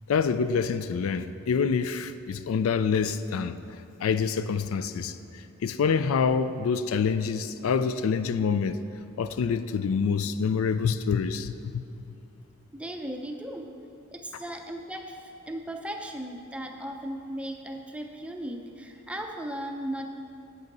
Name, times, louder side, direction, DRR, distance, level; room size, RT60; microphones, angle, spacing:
voice 1, 0.1-3.6 4.0-8.8 9.2-11.8, left 6 dB, 70° left, 0.3 m, -26 dB
voice 2, 12.7-13.7 14.1-20.1, right 1 dB, 5° right, 0.6 m, -37 dB
8.2 x 8.0 x 5.3 m
head